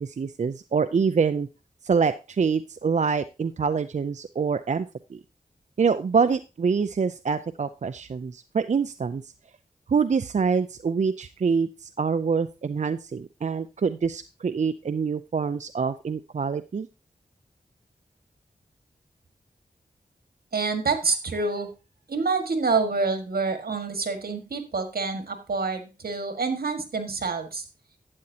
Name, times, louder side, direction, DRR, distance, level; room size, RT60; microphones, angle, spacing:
voice 1, 0.0-1.5 1.8-5.2 5.8-9.3 9.9-16.9, right 5 dB, 50° right, 10 dB, 0.4 m, -25 dB
voice 2, 20.5-21.7 22.1-27.6, right 4 dB, 75° right, 6 dB, 1.7 m, -27 dB
12.0 x 8.6 x 2.8 m, 0.29 s
wide cardioid pair, 65°, 16 cm